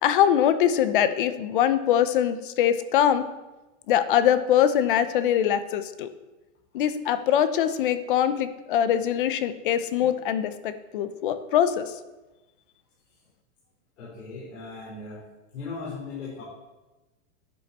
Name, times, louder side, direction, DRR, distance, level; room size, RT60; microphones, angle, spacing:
voice 1, 0.0-3.2 3.9-6.1 6.7-11.9, left 10 dB, 45° left, 12 dB, 0.8 m, -23 dB
voice 2, 14.0-15.2 15.5-16.4, left 4 dB, 85° left, -5 dB, 4.5 m, -38 dB
11.5 x 9.8 x 4.2 m, 1.1 s
supercardioid pair, 175°, 36 cm